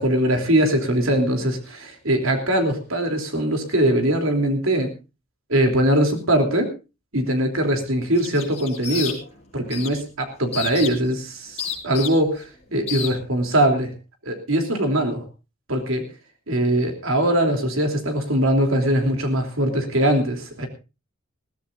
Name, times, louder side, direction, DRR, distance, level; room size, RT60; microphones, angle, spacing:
voice 1, 0.0-4.9 5.5-6.7 7.1-9.2 9.5-13.9 14.2-15.2 15.7-16.1 16.5-20.7, right 1 dB, 75° right, 4 dB, 3.2 m, -21 dB
sound 1, 8.2-9.4 9.7-10.0 10.5-11.1 11.6-12.4 12.9-13.1, left 8 dB, 30° left, 5.6 m, -30 dB
21.5 x 15.5 x 2.6 m, 0.30 s
head